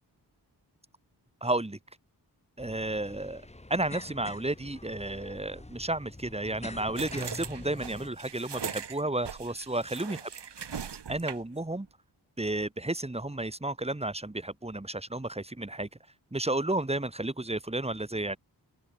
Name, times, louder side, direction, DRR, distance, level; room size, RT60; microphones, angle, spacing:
voice 1, 1.4-1.8 2.6-3.4 3.7-10.3 11.1-11.9 12.4-15.9 16.3-18.4, right 2 dB, 15° right, 3.1 m, -32 dB
sound 1, 2.6-8.1, left 2 dB, 15° left, 2.5 m, -45 dB
sound 2, 7.0-11.6, right 7 dB, 85° right, 2.5 m, -40 dB
open air
wide cardioid pair, 115°, 40 cm